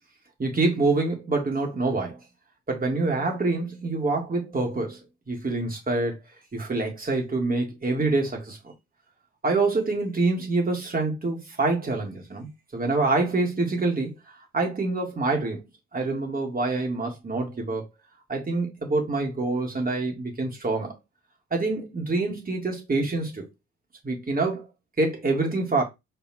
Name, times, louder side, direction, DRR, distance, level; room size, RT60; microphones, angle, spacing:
voice 1, 0.4-2.2 2.7-5.0 5.3-6.2 6.5-8.6 9.4-17.8 18.3-21.0 21.5-23.4 24.0-24.6 25.0-25.8, right 3 dB, 30° right, 3.4 m, -26 dB
5.5 x 4.5 x 4.6 m
cardioid pair, 90°, 30 cm